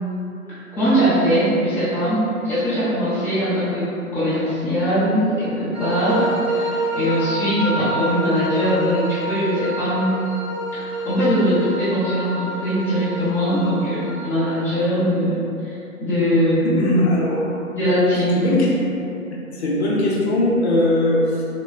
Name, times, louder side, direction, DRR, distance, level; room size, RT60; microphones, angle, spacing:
voice 1, 0.5-3.9 4.1-10.1 10.7-16.7 17.8-18.5, equal, 5° left, -14 dB, 0.8 m, -21 dB
sound 1, 5.7-14.7, right 1 dB, 30° right, 1.2 m, -28 dB
voice 2, 16.6-17.6 18.3-18.7 19.5-21.4, left 1 dB, 45° left, -5 dB, 0.7 m, -20 dB
3.8 x 3.0 x 2.3 m, 2.8 s
figure-of-eight pair, 130°, 44 cm